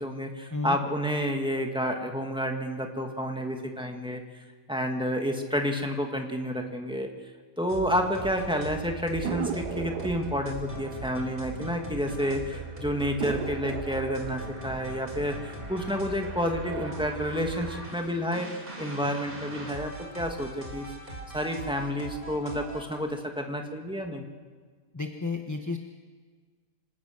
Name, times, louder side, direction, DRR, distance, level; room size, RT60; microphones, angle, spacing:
voice 1, 0.0-4.2 4.7-7.1 7.6-18.5 18.8-20.9 21.3-24.3, equal, 5° right, 2 dB, 1.9 m, -30 dB
sound 1, 7.7-22.9, right 3 dB, 30° right, 3.8 m, -40 dB
sound 2, 9.2-12.3 12.6-12.7 13.2-16.1 16.6-17.2, right 8 dB, 75° right, 1.5 m, -38 dB
voice 2, 24.9-25.8, left 3 dB, 15° left, 4 dB, 0.8 m, -31 dB
26.5 x 17.5 x 6.6 m, 1.5 s
omnidirectional pair, 1.8 m